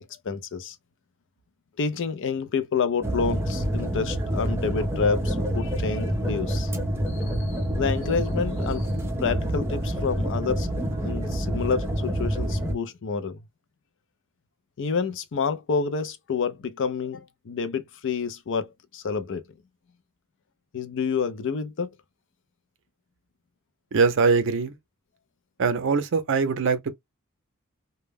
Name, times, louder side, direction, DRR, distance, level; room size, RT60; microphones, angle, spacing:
voice 1, 0.2-0.8 1.8-6.7 7.1-8.9 9.2-10.7 11.0-13.4 14.8-19.4 20.7-21.9, left 5 dB, 55° left, 0.5 m, -28 dB
sound 1, 3.0-12.7, equal, 10° right, 0.5 m, -27 dB
voice 2, 23.9-24.8 25.6-26.9, right 5 dB, 60° right, 0.5 m, -22 dB
2.2 x 2.0 x 3.3 m
head